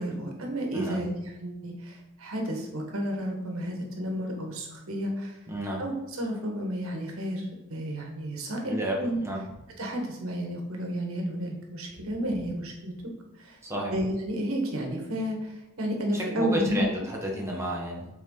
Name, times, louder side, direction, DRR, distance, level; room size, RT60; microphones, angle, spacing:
voice 1, 0.0-5.4 5.8-9.2 9.8-12.9 13.4-13.6 13.9-16.9, equal, 70° right, 1 dB, 1.3 m, -32 dB
voice 2, 5.5-5.8 8.6-9.0 9.2-9.4 13.6-13.9 16.1-18.1, equal, 15° right, -3 dB, 1.1 m, -31 dB
6.7 x 4.3 x 3.9 m, 1.0 s
head